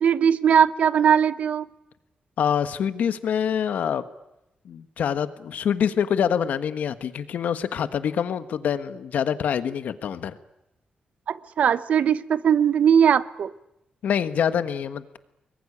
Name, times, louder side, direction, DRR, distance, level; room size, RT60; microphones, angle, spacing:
voice 1, 0.0-1.7 11.3-13.5, right 8 dB, 60° right, 15 dB, 0.9 m, -19 dB
voice 2, 2.4-4.0 4.6-10.4 14.0-15.2, left 8 dB, 90° left, 11 dB, 1.3 m, -25 dB
24.5 x 22.0 x 9.9 m, 0.88 s
wide cardioid pair, 175°, 3 cm